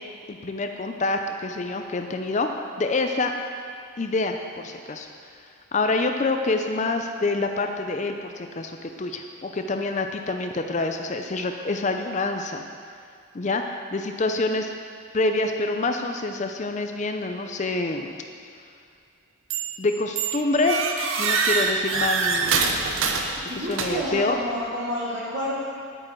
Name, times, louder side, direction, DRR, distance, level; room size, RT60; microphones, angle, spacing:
voice 1, 0.3-2.5 2.8-3.3 4.0-5.1 5.3-5.4 5.7-12.6 13.3-14.7 15.1-18.1 19.8-20.8 21.1-22.7 23.4-24.4, left 3 dB, 35° left, 5 dB, 0.5 m, -26 dB
sound 1, 19.5-19.8 20.2-24.2, right 4 dB, 70° right, 0.8 m, -25 dB
voice 2, 23.5-25.5, equal, 50° right, -7 dB, 2.8 m, -29 dB
9.9 x 8.8 x 4.5 m, 2.2 s
head